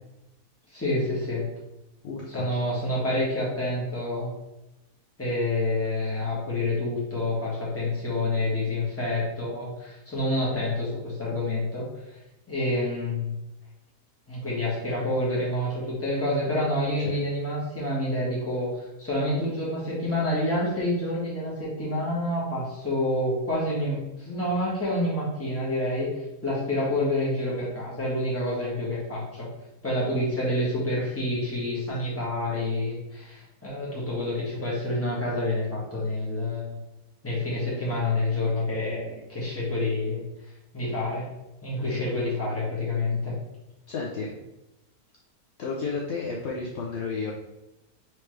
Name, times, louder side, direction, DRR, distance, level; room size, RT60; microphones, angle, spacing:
voice 1, 0.7-1.4 2.3-4.3 5.2-11.9 12.5-13.3 14.3-18.7 19.0-26.1 26.4-29.5 29.8-36.8 37.2-40.2 40.7-41.3 41.6-43.3, left 1 dB, 10° left, -7 dB, 1.2 m, -28 dB
voice 2, 2.0-2.5 17.0-17.2 41.8-42.0 43.9-44.4 45.6-47.3, left 4 dB, 65° left, -2 dB, 0.7 m, -32 dB
4.4 x 3.1 x 3.1 m, 0.93 s
omnidirectional pair, 1.7 m